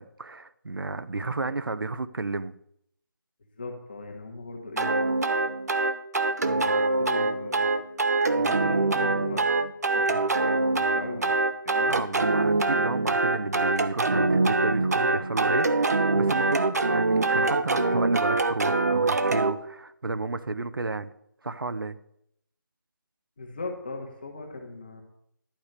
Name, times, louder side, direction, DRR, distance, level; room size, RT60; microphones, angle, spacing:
voice 1, 0.0-2.5 11.8-21.1 21.4-22.0, right 3 dB, 90° right, 12 dB, 0.9 m, -32 dB
voice 2, 3.6-4.9 6.4-7.7 8.4-9.4 9.9-12.0 23.4-25.0, left 3 dB, 25° left, 3 dB, 1.8 m, -38 dB
sound 1, 4.8-19.5, right 3 dB, 50° right, 0.9 m, -24 dB
12.0 x 5.0 x 8.2 m, 0.73 s
figure-of-eight pair, 180°, 11 cm